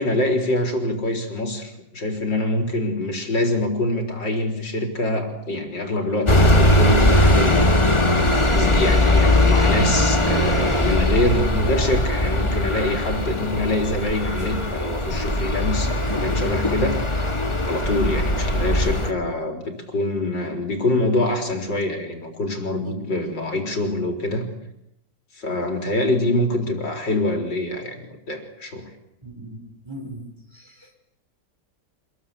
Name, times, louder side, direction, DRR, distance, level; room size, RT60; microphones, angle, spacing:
voice 1, 0.0-7.9 8.5-17.1 17.7-24.4 25.3-28.0 28.3-28.9, left 1 dB, 80° left, 4 dB, 4.7 m, -25 dB
sound 1, 6.3-19.1, left 1 dB, 15° left, 1.7 m, -20 dB
voice 2, 29.2-30.9, right 1 dB, 15° right, 3 dB, 5.4 m, -39 dB
26.5 x 20.5 x 8.6 m, 0.82 s
omnidirectional pair, 1.9 m